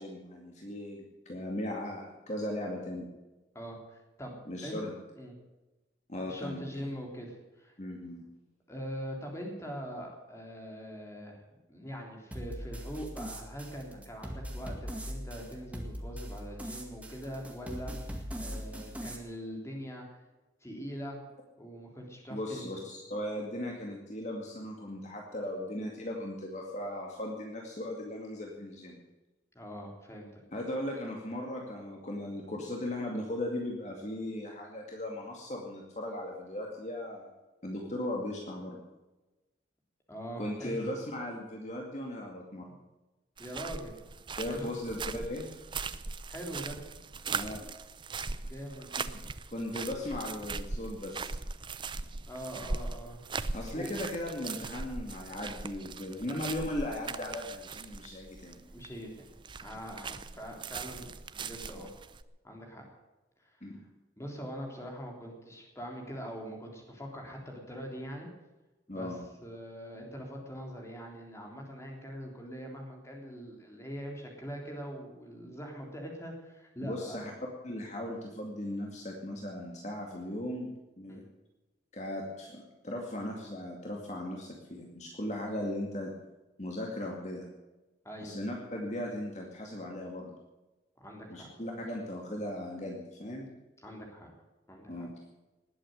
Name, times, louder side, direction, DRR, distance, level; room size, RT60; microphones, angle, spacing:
voice 1, 0.0-3.1 4.5-4.9 6.1-6.6 7.8-8.2 22.3-29.0 30.5-37.3 37.6-38.8 40.4-42.7 44.4-45.5 47.3-47.7 49.5-51.3 53.5-58.6 63.6-63.8 68.9-69.2 76.8-77.3 77.6-81.2 81.9-86.1 86.6-87.5 88.2-90.3 91.3-93.5 94.9-95.1, left 1 dB, 40° left, 0 dB, 2.3 m, -37 dB
voice 2, 3.5-4.4 4.6-4.8 5.2-5.3 6.3-7.8 8.7-20.2 20.6-21.2 21.6-22.7 29.5-30.4 40.1-40.9 43.4-43.9 44.5-44.8 46.3-46.8 48.4-49.1 52.3-53.2 53.7-53.9 58.7-59.3 59.6-61.9 62.4-62.8 63.4-63.6 64.2-68.3 68.9-77.2 81.1-81.2 88.0-88.4 91.0-91.5 93.8-94.3 94.7-95.1, equal, 15° left, 1 dB, 3.6 m, -42 dB
sound 1, 12.3-19.2, equal, 10° right, 1.9 m, -41 dB
sound 2, 43.4-62.2, right 4 dB, 25° right, 0.6 m, -40 dB
19.5 x 8.7 x 8.0 m, 1.1 s
head